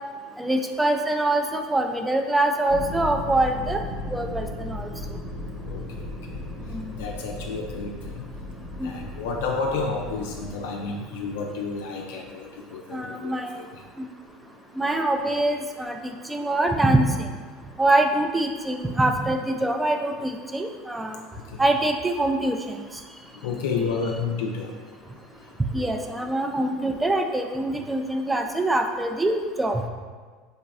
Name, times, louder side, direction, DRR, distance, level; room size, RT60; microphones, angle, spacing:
voice 1, 0.4-3.8 4.1-4.9 6.7-6.9 8.8-8.9 12.9-13.5 14.0-14.1 14.8-16.0 16.3-17.3 17.8-21.2 21.6-22.6 25.7-29.8, right 2 dB, 10° right, 4 dB, 0.4 m, -24 dB
sound 1, 2.7-10.6, left 1 dB, 40° right, 0.8 m, -36 dB
voice 2, 7.0-8.2 8.8-12.5 12.9-13.3 23.4-24.7, left 4 dB, 70° left, 0 dB, 0.4 m, -30 dB
3.9 x 3.4 x 2.3 m, 1.5 s
hypercardioid pair, 75°, 0 cm